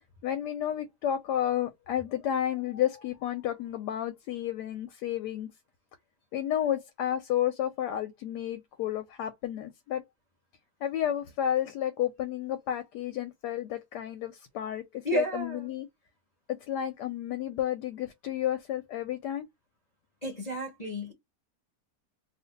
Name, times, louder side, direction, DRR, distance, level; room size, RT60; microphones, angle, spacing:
voice 1, 0.2-5.5 6.3-10.0 10.8-15.9 16.5-19.5, left 11 dB, 75° left, 1.1 m, -31 dB
voice 2, 15.0-15.7 20.2-21.1, equal, 35° left, 0.6 m, -31 dB
2.7 x 2.5 x 3.8 m
omnidirectional pair, 1.9 m